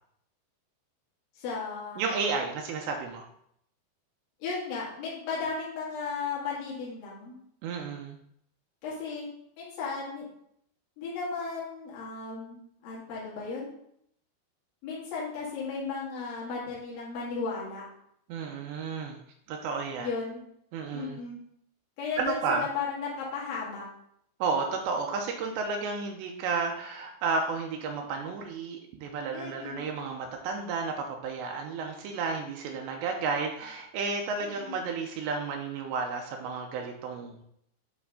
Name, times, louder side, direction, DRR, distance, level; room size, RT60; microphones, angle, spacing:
voice 1, 1.4-2.0 4.4-7.4 8.8-9.3 9.6-10.2 11.0-13.7 14.8-17.8 20.0-20.4 20.9-21.4 22.0-23.8 29.3-29.9 34.4-34.7, left 4 dB, 55° left, -7 dB, 3.4 m, -35 dB
voice 2, 2.0-3.3 7.6-8.2 18.3-19.2 19.5-20.1 20.7-21.2 22.2-22.7 24.4-37.4, right 4 dB, 85° right, 2 dB, 2.8 m, -32 dB
9.6 x 4.5 x 3.7 m, 0.72 s
omnidirectional pair, 5.2 m